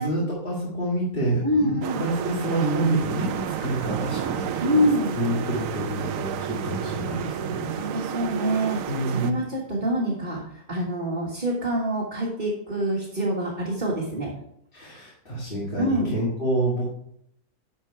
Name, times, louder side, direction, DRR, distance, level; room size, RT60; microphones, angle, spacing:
voice 1, 0.0-7.8 8.9-9.4 14.7-16.9, right 1 dB, 35° left, -7 dB, 2.2 m, -28 dB
voice 2, 1.4-2.0 4.6-5.2 7.7-8.8 9.1-14.3 15.8-16.1, equal, 30° right, -5 dB, 1.7 m, -26 dB
sound 1, 1.8-9.3, right 9 dB, 70° right, 0.9 m, -31 dB
Piano, 2.6-3.6, right 3 dB, 90° right, 1.5 m, -33 dB
11.0 x 4.5 x 4.6 m, 0.74 s
omnidirectional pair, 1.6 m